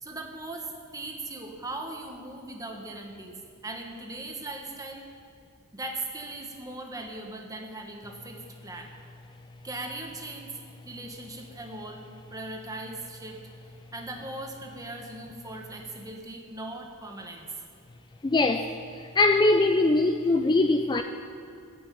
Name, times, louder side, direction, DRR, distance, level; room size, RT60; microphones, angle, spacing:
voice 1, 0.0-5.1 5.7-8.9 9.6-13.4 13.9-17.5, right 2 dB, 15° right, 2 dB, 1.3 m, -39 dB
voice 2, 18.2-21.0, left 2 dB, 20° left, 7 dB, 0.3 m, -22 dB
14.5 x 6.1 x 8.8 m, 2.5 s
head